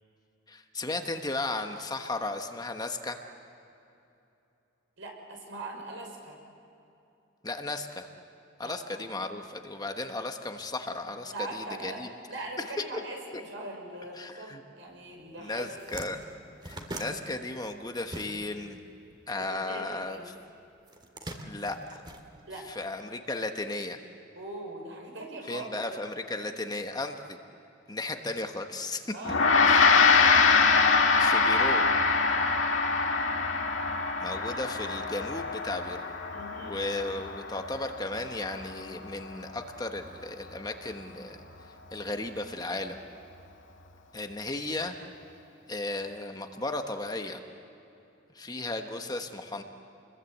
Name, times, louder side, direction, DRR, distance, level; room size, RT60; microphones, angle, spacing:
voice 1, 0.5-3.2 7.4-8.1 8.6-12.1 14.2-14.6 15.4-16.2 16.6-18.8 19.3-20.3 21.5-22.0 22.7-24.0 25.5-27.4 27.9-29.1 29.7-29.8 31.2-31.9 34.2-36.1 36.6-41.4 41.9-43.0 44.1-45.0 45.7-47.4 48.3-49.6, left 2 dB, 20° left, 5 dB, 1.2 m, -35 dB
voice 2, 5.0-6.4 8.6-9.1 11.3-12.0 12.3-15.7 19.4-20.3 22.5-22.7 24.3-25.9 29.1-30.2 36.3-36.8, right 2 dB, 75° right, 1 dB, 6.0 m, -41 dB
sound 1, 15.2-15.3 15.6-18.7 19.0-20.2 20.8-22.9, right 1 dB, 25° right, 2.2 m, -42 dB
Gong, 29.2-38.9, left 4 dB, 75° left, 2.0 m, -24 dB
28.5 x 22.0 x 8.1 m, 2.8 s
head